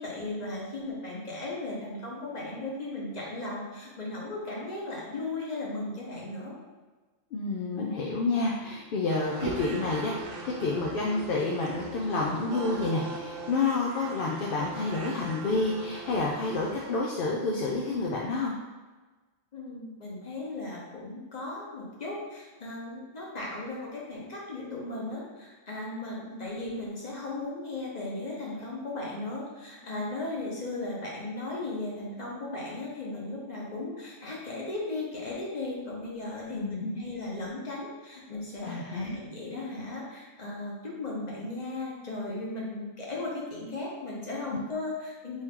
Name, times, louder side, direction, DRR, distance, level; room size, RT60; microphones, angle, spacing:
voice 1, 0.0-6.6 19.5-45.4, left 2 dB, 35° left, -4 dB, 1.1 m, -36 dB
voice 2, 7.3-10.1 10.4-18.5 36.5-37.0 38.6-39.2, left 3 dB, 60° left, -3 dB, 0.6 m, -29 dB
sound 1, 9.1-17.0, right 3 dB, 90° right, 1.0 m, -40 dB
4.4 x 2.9 x 3.6 m, 1.3 s
omnidirectional pair, 1.3 m